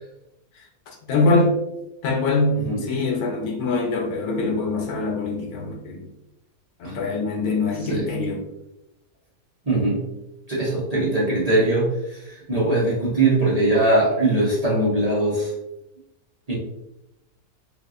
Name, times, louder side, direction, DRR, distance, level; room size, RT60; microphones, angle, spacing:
voice 1, 1.0-1.5 2.0-6.1 6.8-8.5, left 3 dB, 75° left, 1 dB, 1.2 m, -23 dB
voice 2, 9.7-10.1 10.5-15.5 16.5-16.6, right 2 dB, 30° right, -7 dB, 0.9 m, -21 dB
4.0 x 3.3 x 2.5 m, 0.90 s
omnidirectional pair, 1.7 m